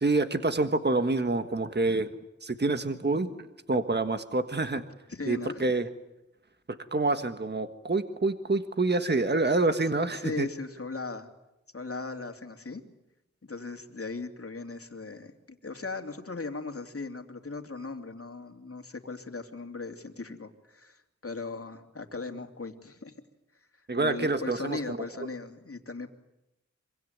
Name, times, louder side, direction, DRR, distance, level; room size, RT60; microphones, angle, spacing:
voice 1, 0.0-2.1 2.4-3.3 3.7-4.8 5.3-5.9 6.7-10.5 23.9-25.3, right 2 dB, 35° right, 9 dB, 1.5 m, -27 dB
voice 2, 5.1-5.7 10.1-11.3 11.7-12.8 13.4-15.3 15.6-23.1 23.9-26.1, left 3 dB, 50° left, 5 dB, 2.8 m, -38 dB
25.5 x 24.0 x 9.5 m, 0.90 s
wide cardioid pair, 60°, 29 cm